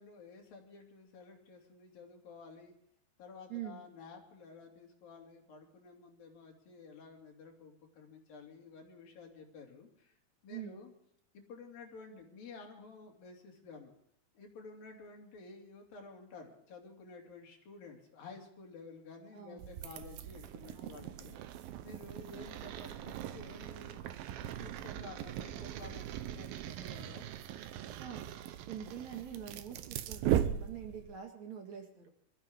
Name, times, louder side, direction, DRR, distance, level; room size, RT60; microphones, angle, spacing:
voice 1, 0.0-2.7 3.2-10.2 10.4-10.9 11.3-13.9 14.3-21.4 21.8-24.0 24.4-27.2, left 4 dB, 65° left, 1 dB, 4.3 m, -52 dB
voice 2, 3.5-3.8 10.5-10.8 19.3-19.8 20.7-21.3 28.0-28.2 28.7-32.1, right 9 dB, 55° right, 3 dB, 2.9 m, -45 dB
sound 1, 19.6-31.2, right 11 dB, 75° right, 2.6 m, -39 dB
25.0 x 13.5 x 3.7 m, 0.73 s
omnidirectional pair, 4.4 m